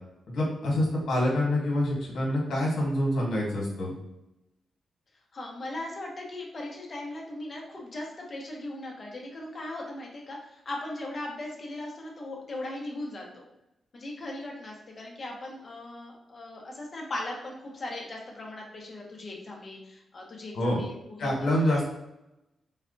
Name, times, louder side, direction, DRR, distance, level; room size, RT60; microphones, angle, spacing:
voice 1, 0.3-4.0 20.5-20.8 21.2-21.9, left 1 dB, 80° left, -3 dB, 1.2 m, -26 dB
voice 2, 5.3-13.4 13.9-21.5, left 1 dB, 35° left, -1 dB, 0.7 m, -38 dB
4.1 x 2.2 x 2.5 m, 0.90 s
wide cardioid pair, 160°, 0 cm